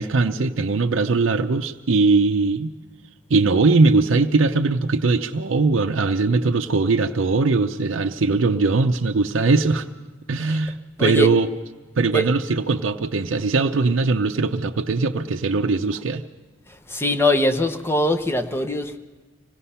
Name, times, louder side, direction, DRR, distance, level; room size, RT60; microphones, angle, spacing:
voice 1, 0.0-2.7 3.3-9.9 10.3-11.5 12.0-16.2, right 3 dB, 80° right, 4 dB, 0.7 m, -20 dB
voice 2, 11.0-11.3 12.1-12.3 16.9-19.0, left 1 dB, 15° left, 8 dB, 0.9 m, -21 dB
25.5 x 18.0 x 5.6 m, 1.3 s
head